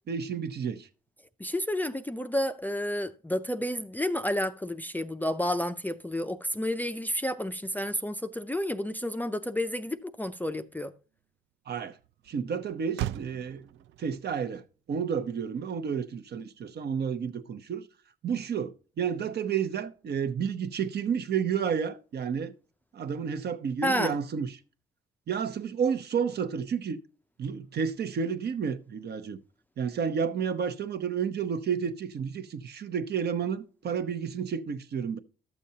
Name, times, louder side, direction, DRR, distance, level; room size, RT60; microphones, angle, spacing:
voice 1, 0.1-0.9 11.7-12.0 12.3-13.7 14.0-14.6 14.9-17.9 18.2-22.5 22.9-24.6 25.3-27.0 27.4-29.4 29.8-35.2, right 7 dB, 55° right, 0.8 m, -31 dB
voice 2, 1.4-10.9 23.8-24.2, left 1 dB, 10° left, 0.5 m, -30 dB
Motor vehicle (road), 9.0-17.5, right 13 dB, 75° right, 0.4 m, -43 dB
12.0 x 7.0 x 2.8 m
cardioid pair, 90°, 20 cm